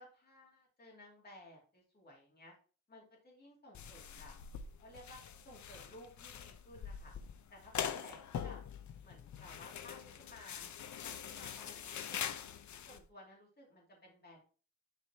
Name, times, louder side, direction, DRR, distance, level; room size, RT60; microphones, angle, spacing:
voice 1, 0.0-2.5 2.9-4.3 4.8-7.1 7.5-8.6 9.0-10.7 11.0-11.8 12.1-12.5 12.9-14.4, left 1 dB, 30° left, -2 dB, 2.5 m, -56 dB
sound 1, 3.7-13.0, left 8 dB, 70° left, 0.8 m, -44 dB
10.0 x 4.9 x 2.9 m, 0.38 s
wide cardioid pair, 130°, 30 cm